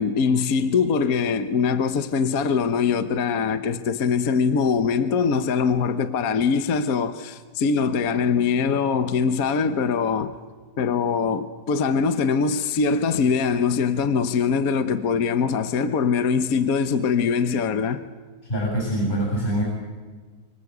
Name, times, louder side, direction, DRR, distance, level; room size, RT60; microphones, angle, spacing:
voice 1, 0.0-10.3 10.8-18.0, left 5 dB, 60° left, 1.5 m, -22 dB
voice 2, 18.4-19.6, right 1 dB, 30° left, 7.7 m, -24 dB
27.5 x 26.0 x 8.2 m
omnidirectional pair, 1.9 m